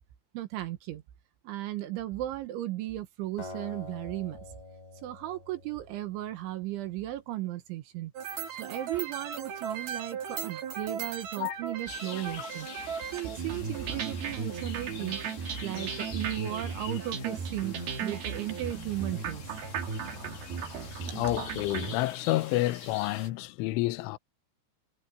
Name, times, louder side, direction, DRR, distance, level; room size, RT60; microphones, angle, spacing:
voice 1, 0.3-1.0 1.5-4.4 5.0-8.1 8.6-12.7 13.1-15.2 15.6-19.4, right 15 dB, 75° right, 3.4 m, -35 dB
Acoustic guitar, 3.4-6.5, left 2 dB, 30° left, 6.5 m, -46 dB
sound 1, 8.2-22.0, right 6 dB, 55° right, 3.9 m, -36 dB
sound 2, 11.9-23.3, left 7 dB, 55° left, 5.8 m, -46 dB
voice 2, 21.0-24.2, left 17 dB, 80° left, 3.3 m, -29 dB
omnidirectional pair, 6.0 m